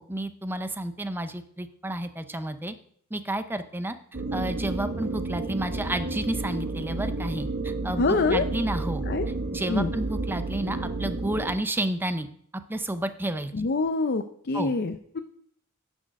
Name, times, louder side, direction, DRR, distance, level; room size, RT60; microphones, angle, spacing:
voice 1, 0.0-2.7 3.1-3.9 4.3-8.0 8.3-9.0 9.5-12.3 12.7-13.5 14.5-14.7, right 1 dB, 10° right, 10 dB, 0.6 m, -31 dB
sound 1, 4.1-11.6, right 2 dB, 50° right, 1.0 m, -31 dB
voice 2, 8.0-8.4 9.1-9.3 9.7-9.9 13.5-15.2, left 3 dB, 50° left, 8 dB, 0.5 m, -25 dB
11.0 x 6.3 x 5.3 m, 0.64 s
head